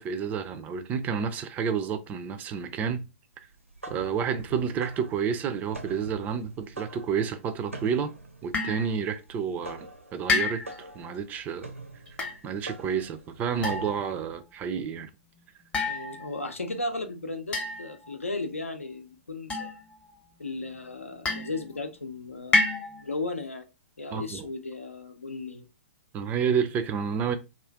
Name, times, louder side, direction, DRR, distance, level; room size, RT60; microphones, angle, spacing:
voice 1, 0.0-3.1 3.9-8.1 8.4-10.6 10.9-11.7 12.4-15.1 24.1-24.5 26.1-27.4, right 7 dB, 20° right, 0.4 m, -30 dB
sound 1, 3.5-14.3, right 2 dB, 90° right, 0.7 m, -44 dB
sound 2, 8.5-8.9 10.3-10.9 12.1-12.4 13.6-14.2 15.7-16.5 17.5-18.1 19.5-20.1 21.3-21.8 22.5-23.2, left 3 dB, 15° left, 0.7 m, -28 dB
voice 2, 15.9-19.7 20.4-22.6 23.0-23.6 24.0-25.7, left 2 dB, 85° left, 0.7 m, -35 dB
2.4 x 2.4 x 3.4 m
figure-of-eight pair, 110°, 7 cm